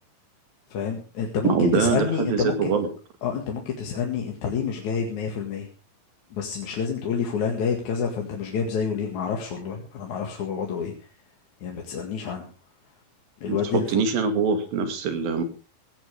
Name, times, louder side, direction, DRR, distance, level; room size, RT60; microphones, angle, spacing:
voice 1, 0.7-2.7 3.2-5.7 6.3-10.9 11.6-12.5 13.4-14.0, left 6 dB, 60° left, 1 dB, 3.2 m, -28 dB
voice 2, 1.4-2.9 13.5-13.6 13.9-15.4, right 5 dB, 80° right, 8 dB, 3.9 m, -23 dB
17.0 x 16.5 x 3.5 m, 0.33 s
omnidirectional pair, 4.1 m